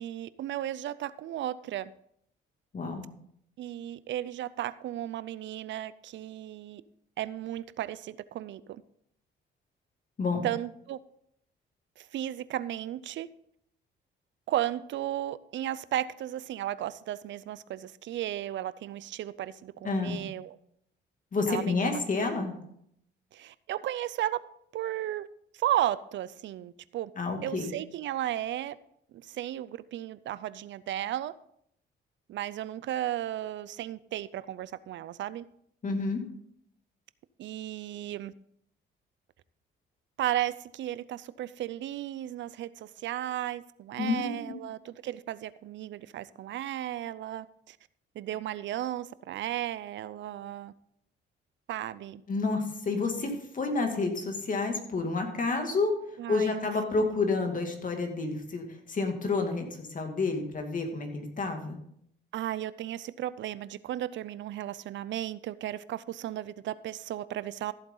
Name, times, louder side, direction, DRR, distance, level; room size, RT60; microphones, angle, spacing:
voice 1, 0.0-1.9 3.6-6.8 7.2-8.8 10.4-11.0 12.0-13.3 14.5-20.6 21.5-21.9 23.3-24.4 24.7-25.3 25.5-27.1 27.4-28.8 29.1-31.3 32.3-35.5 37.4-38.3 40.2-47.8 48.2-50.7 51.7-52.2 53.2-53.4 56.2-56.7 62.3-67.7, right 12 dB, 70° right, 0.5 m, -34 dB
voice 2, 2.7-3.1 10.2-10.5 19.8-20.2 21.3-22.6 27.2-27.7 35.8-36.3 44.0-44.6 52.3-55.9 56.3-61.8, left 3 dB, 40° left, 2.3 m, -29 dB
14.5 x 7.9 x 3.9 m
cardioid pair, 90°, 20 cm